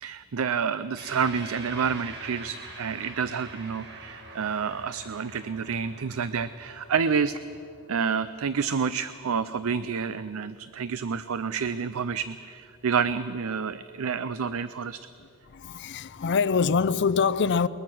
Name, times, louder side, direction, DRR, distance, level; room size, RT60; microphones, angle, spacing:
voice 1, 0.0-7.4 7.9-15.0, right 6 dB, 65° right, 0.5 m, -29 dB
sound 1, 1.0-9.6, right 2 dB, 50° right, 2.2 m, -45 dB
voice 2, 15.5-17.7, left 5 dB, 55° left, 0.5 m, -24 dB
21.5 x 21.0 x 6.1 m
head